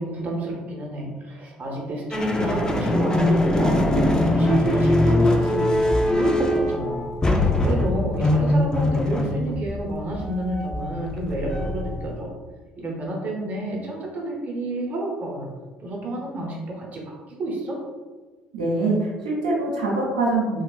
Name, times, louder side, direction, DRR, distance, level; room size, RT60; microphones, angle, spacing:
voice 1, 0.0-12.3 12.8-15.5 15.8-17.8, right 1 dB, 40° right, -1 dB, 0.8 m, -29 dB
sound 1, 2.1-12.2, left 1 dB, 15° left, 0.4 m, -22 dB
voice 2, 18.5-20.6, right 2 dB, 85° right, -4 dB, 0.5 m, -24 dB
3.1 x 2.3 x 2.3 m, 1.3 s
hypercardioid pair, 55°, 4 cm